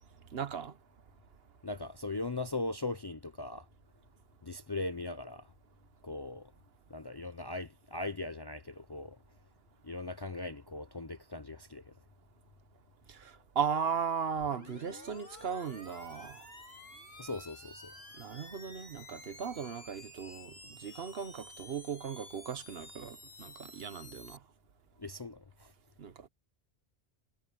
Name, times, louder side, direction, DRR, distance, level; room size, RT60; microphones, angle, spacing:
voice 1, 0.3-0.8 13.1-16.5 18.2-24.4 26.0-26.3, right 7 dB, 65° right, 1.2 m, -37 dB
voice 2, 1.6-3.7 4.4-5.5 6.0-6.5 6.9-9.2 9.8-11.9 17.2-17.9 25.0-25.7, left 2 dB, 30° left, 0.5 m, -39 dB
sound 1, 13.2-17.1, equal, 10° right, 5.6 m, -63 dB
sound 2, 14.4-24.4, left 2 dB, 65° left, 4.9 m, -52 dB
omnidirectional pair, 1.1 m